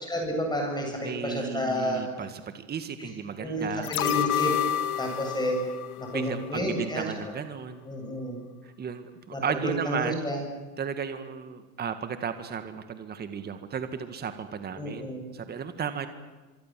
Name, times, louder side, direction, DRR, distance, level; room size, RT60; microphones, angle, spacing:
voice 1, 0.0-2.0 3.0-3.1 3.4-4.5 5.0-5.6 6.0-7.2 7.9-8.4 9.3-10.4 14.8-15.2, equal, 10° left, 2 dB, 7.6 m, -30 dB
voice 2, 1.0-3.9 6.1-7.8 8.8-10.2 10.8-15.1 15.3-16.1, right 7 dB, 20° right, 9 dB, 1.9 m, -34 dB
sound 1, 3.8-7.0 7.3-7.4, left 11 dB, 75° left, 1.6 m, -30 dB
26.0 x 24.0 x 7.7 m, 1.2 s
hypercardioid pair, 120°, 45 cm